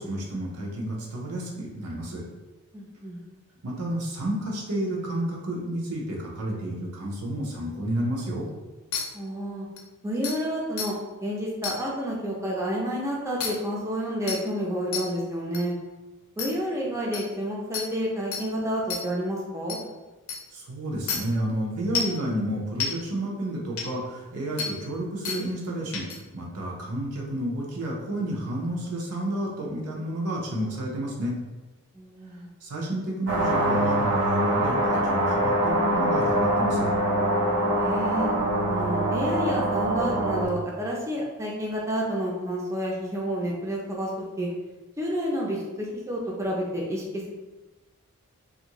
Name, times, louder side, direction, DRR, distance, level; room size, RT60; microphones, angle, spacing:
voice 1, 0.0-2.2 3.6-8.5 20.5-26.0 26.3-31.3 32.6-36.9, right 1 dB, 85° right, -3 dB, 0.7 m, -30 dB
voice 2, 2.7-3.2 9.1-9.7 10.0-10.9 11.2-15.7 16.4-19.8 31.9-32.5 37.8-38.3 38.7-44.1 44.4-44.5 45.0-47.3, equal, 15° right, -3 dB, 0.4 m, -30 dB
sound 1, 8.9-9.0 9.8-9.9 10.2-10.3 10.8-10.9 11.6-11.8 13.4-13.5 14.3-14.4 14.9-15.0 15.5-15.6 16.4-16.5 17.1-17.2 17.7-17.8 18.3-18.4 18.9-19.0 19.7-19.8 20.3-20.4 21.1-21.2 21.9-22.2 22.8-22.9 23.8-23.9 24.6-24.7 25.2-25.4 25.9-26.2, left 6 dB, 65° left, 0.5 m, -29 dB
sound 2, 33.3-40.5, right 1 dB, 55° right, 0.7 m, -24 dB
2.6 x 2.5 x 2.9 m, 1.2 s
head